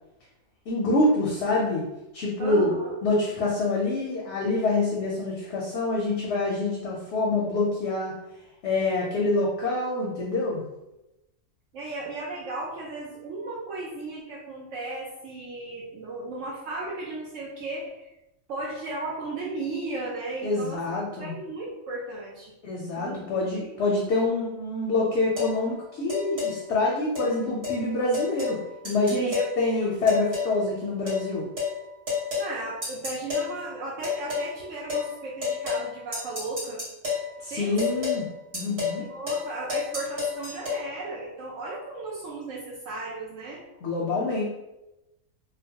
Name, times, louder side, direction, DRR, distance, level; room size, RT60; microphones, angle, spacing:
voice 1, 0.7-1.8 2.1-2.7 3.0-8.1 8.6-10.6 20.4-21.3 22.6-28.6 28.8-31.4 37.4-38.3 38.5-39.1 43.8-44.4, left 2 dB, 65° left, -2 dB, 0.7 m, -26 dB
voice 2, 2.4-2.9 11.7-18.1 18.5-20.8 21.2-22.5 23.0-23.2 29.1-29.4 29.7-29.9 32.4-36.8 37.5-38.0 39.0-43.6, right 2 dB, 70° right, -5 dB, 0.9 m, -35 dB
sound 1, 25.4-25.5 26.1-26.5 27.1-27.3 27.6-27.8 28.1-28.6 28.8-29.5 30.1-30.5 31.1-31.2 31.6-31.7 32.1-32.5 32.8-33.5 34.0-34.5 34.9-35.1 35.4-35.9 36.1-37.3 37.8-38.2 38.5-39.0 39.3-39.4 39.7-40.8, left 5 dB, 50° right, 1.5 m, -29 dB
2.9 x 2.1 x 2.7 m, 0.94 s
omnidirectional pair, 1.4 m